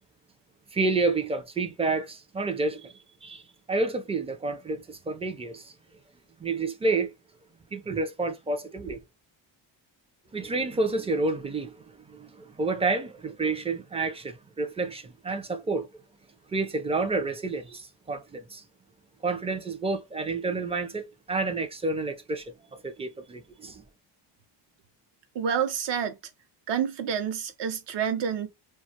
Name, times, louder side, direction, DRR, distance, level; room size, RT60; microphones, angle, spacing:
voice 1, 0.7-2.9 3.2-3.4 3.7-5.7 6.4-7.1 7.7-9.0 10.3-15.9 16.5-18.6 19.2-23.8, right 3 dB, 15° right, 0.3 m, -29 dB
voice 2, 25.3-26.2 26.7-28.5, right 8 dB, 65° right, 0.7 m, -28 dB
2.4 x 2.3 x 2.7 m
cardioid pair, 115°, 47 cm